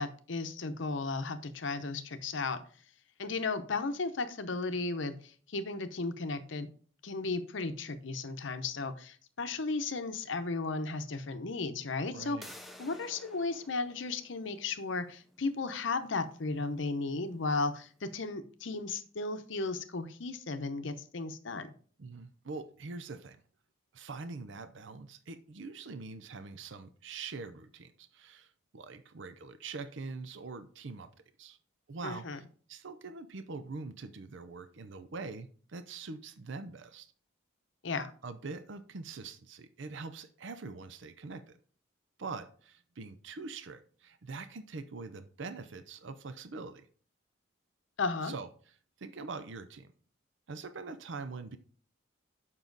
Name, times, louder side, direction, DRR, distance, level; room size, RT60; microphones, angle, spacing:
voice 1, 0.0-2.6 3.2-6.7 7.0-12.4 12.8-21.7 32.0-32.4 37.8-38.1 48.0-48.3, left 3 dB, 70° left, 9 dB, 0.7 m, -35 dB
voice 2, 12.1-12.5 22.0-23.4 23.9-31.1 31.4-31.6 31.9-37.1 38.2-41.6 42.2-46.9 48.2-48.5 49.0-49.9 50.5-51.6, right 4 dB, 70° right, 11 dB, 0.6 m, -43 dB
sound 1, 12.4-18.0, left 1 dB, ahead, 0.6 m, -55 dB
7.2 x 5.6 x 3.9 m, 0.43 s
head